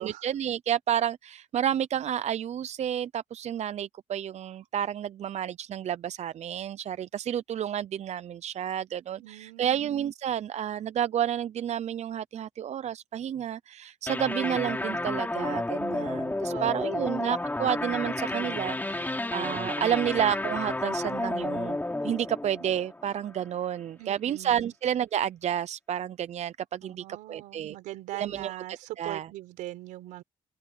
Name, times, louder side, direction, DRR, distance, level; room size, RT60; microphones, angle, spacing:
voice 1, 0.0-21.8 22.0-27.8 28.1-28.6 29.0-29.3, right 10 dB, 60° right, 0.6 m, -30 dB
voice 2, 9.2-10.1 16.5-17.2 24.0-24.7 26.8-30.2, right 16 dB, 90° right, 4.4 m, -41 dB
sound 1, 14.1-23.4, left 2 dB, 15° left, 3.1 m, -31 dB
supercardioid pair, 65°, 13 cm